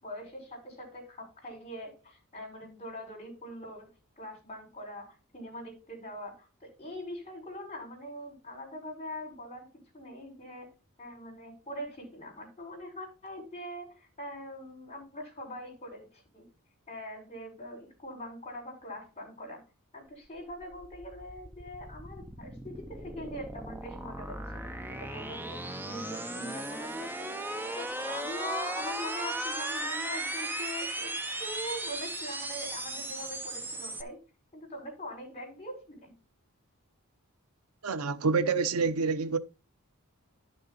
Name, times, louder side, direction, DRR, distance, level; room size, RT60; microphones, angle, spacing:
voice 1, 0.0-9.7 9.9-10.7 11.0-16.5 16.9-19.6 19.9-27.4 27.7-31.1 31.4-34.2 34.5-36.1, left 1 dB, 25° left, 5.1 m, -42 dB
sound 1, 20.3-34.0, right 1 dB, 10° right, 0.7 m, -37 dB
voice 2, 37.8-39.4, right 4 dB, 75° right, 0.7 m, -27 dB
11.0 x 6.6 x 4.0 m
head